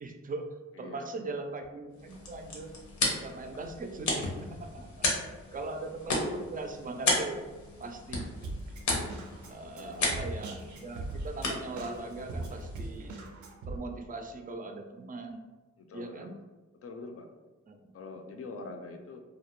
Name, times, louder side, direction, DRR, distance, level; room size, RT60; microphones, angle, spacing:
voice 1, 0.0-2.7 3.1-5.1 5.5-7.4 7.8-8.3 9.5-13.1 13.7-15.5 15.9-16.3 17.7-18.0, right 3 dB, 30° right, 5 dB, 0.4 m, -40 dB
voice 2, 0.8-1.3 9.7-10.1 15.9-16.4 16.8-17.3 17.9-19.2, left 3 dB, 50° left, 4 dB, 0.4 m, -44 dB
sound 1, 1.9-13.2, left 2 dB, 75° left, 0.8 m, -35 dB
Drum kit, 8.4-13.8, right 2 dB, 85° right, 0.5 m, -40 dB
2.3 x 2.0 x 2.9 m, 1.2 s
cardioid pair, 65°, 29 cm